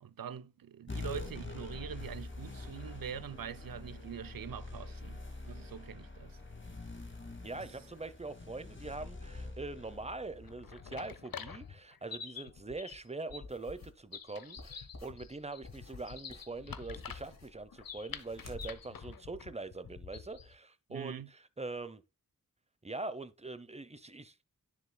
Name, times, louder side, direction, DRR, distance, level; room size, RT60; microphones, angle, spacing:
voice 1, 0.0-6.4 7.6-7.7 20.9-21.3, right 8 dB, 80° right, 0.6 m, -44 dB
sound 1, 0.9-11.7, left 2 dB, 35° left, 2.1 m, -45 dB
voice 2, 7.4-22.0 22.8-24.5, right 3 dB, 20° right, 0.8 m, -43 dB
sound 2, 10.3-20.5, left 6 dB, 85° left, 0.8 m, -47 dB
sound 3, 13.4-14.0 14.6-18.8, left 2 dB, 50° left, 2.5 m, -52 dB
9.9 x 7.2 x 2.3 m
wide cardioid pair, 85°, 34 cm